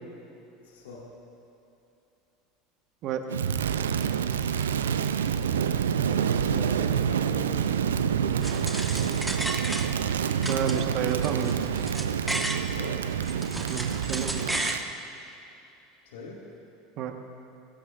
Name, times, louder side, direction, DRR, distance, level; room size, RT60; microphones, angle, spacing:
voice 1, 0.6-1.1 3.7-5.3 6.0-9.2 12.7-13.0 16.0-16.4, left 2 dB, 70° left, -3 dB, 2.2 m, -42 dB
Crackle, 3.3-14.9, right 8 dB, 80° right, 0.5 m, -27 dB
sound 1, 8.4-10.1 10.4-12.7 13.1-14.8, right 1 dB, 5° right, 1.4 m, -33 dB
voice 2, 10.5-11.7 13.7-14.3 17.0-17.1, right 8 dB, 50° right, 5 dB, 1.4 m, -30 dB
21.5 x 16.5 x 2.5 m, 2.9 s
hypercardioid pair, 75°, 0 cm